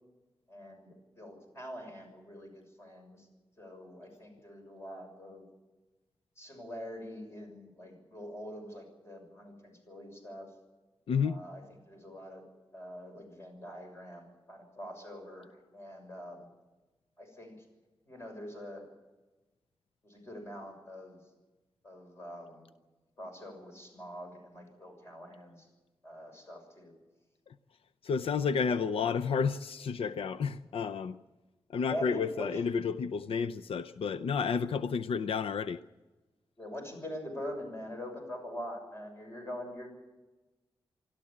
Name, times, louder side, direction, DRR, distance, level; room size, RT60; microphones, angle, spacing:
voice 1, 0.5-3.3 3.6-5.5 6.4-10.5 11.2-12.4 12.7-16.5 17.2-17.6 18.1-18.8 20.0-21.2 21.8-22.7 23.2-25.7 26.0-26.9 31.9-32.6 36.6-39.9, equal, 25° left, 3 dB, 6.4 m, -44 dB
voice 2, 11.1-11.4 28.0-31.2 31.7-35.8, left 6 dB, 85° left, 11 dB, 0.6 m, -31 dB
25.5 x 13.0 x 8.6 m, 1.1 s
wide cardioid pair, 155°, 9 cm